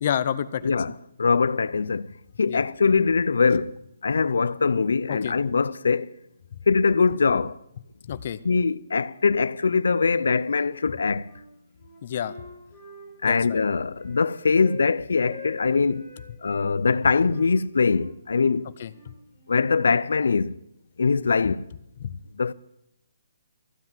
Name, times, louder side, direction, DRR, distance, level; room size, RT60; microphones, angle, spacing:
voice 1, 0.0-0.9 2.5-2.6 5.1-5.4 8.0-8.4 12.0-12.3 13.2-13.6 18.8-19.1 22.0-22.1, left 9 dB, 35° left, 0.6 m, -29 dB
voice 2, 1.2-2.1 2.4-3.8 4.0-6.1 6.7-7.6 8.4-11.3 13.2-16.1 16.4-18.7 19.5-20.6 21.0-21.7 22.4-22.5, left 4 dB, 85° left, 0.4 m, -22 dB
Wind instrument woodwind instrument, 11.1-11.4 11.8-14.9 15.2-16.7 17.3-19.8, left 1 dB, 10° right, 4.4 m, -45 dB
15.0 x 7.9 x 7.4 m
hypercardioid pair, 175°, 0 cm